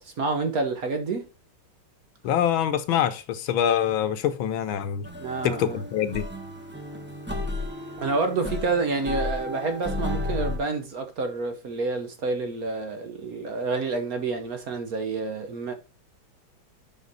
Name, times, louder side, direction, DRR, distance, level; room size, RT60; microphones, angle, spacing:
voice 1, 0.2-1.2 5.2-5.8 8.0-15.7, right 3 dB, 55° right, 1.2 m, -28 dB
voice 2, 2.2-5.1 5.4-6.3, left 9 dB, 75° left, 1.6 m, -25 dB
sound 1, 5.0-10.6, left 1 dB, 10° right, 0.8 m, -33 dB
7.5 x 5.8 x 4.0 m
omnidirectional pair, 2.2 m